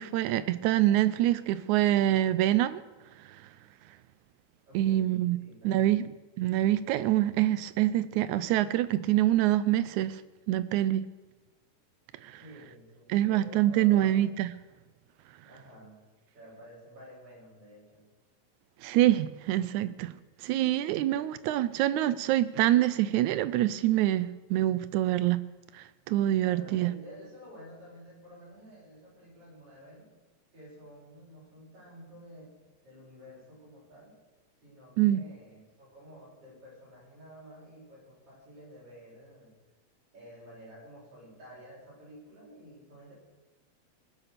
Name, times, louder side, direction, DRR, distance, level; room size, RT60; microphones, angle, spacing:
voice 1, 0.0-2.8 4.7-5.4 5.6-10.2 10.5-11.1 12.2-12.4 13.1-14.5 18.8-20.1 20.4-25.4 25.7-26.9 35.0-35.2, right 13 dB, 80° right, 14 dB, 1.8 m, -25 dB
voice 2, 4.7-6.1 12.4-14.2 15.4-16.0 16.3-18.1 26.4-30.1 30.5-32.5 32.8-34.2 34.6-39.5 40.1-43.1, equal, 40° right, -6 dB, 7.8 m, -51 dB
19.5 x 8.5 x 6.7 m, 1.2 s
omnidirectional pair, 3.9 m